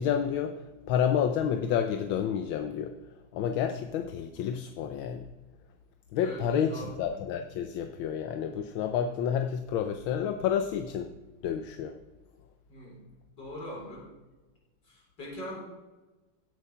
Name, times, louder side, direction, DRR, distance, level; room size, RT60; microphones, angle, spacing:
voice 1, 0.0-2.9 3.3-5.2 6.1-11.1 11.4-11.9, left 8 dB, 85° left, 7 dB, 1.6 m, -29 dB
voice 2, 6.2-7.1 12.7-13.0 13.4-14.1 14.8-15.6, equal, 60° left, -3 dB, 5.2 m, -41 dB
16.5 x 8.3 x 5.7 m, 1.2 s
omnidirectional pair, 2.1 m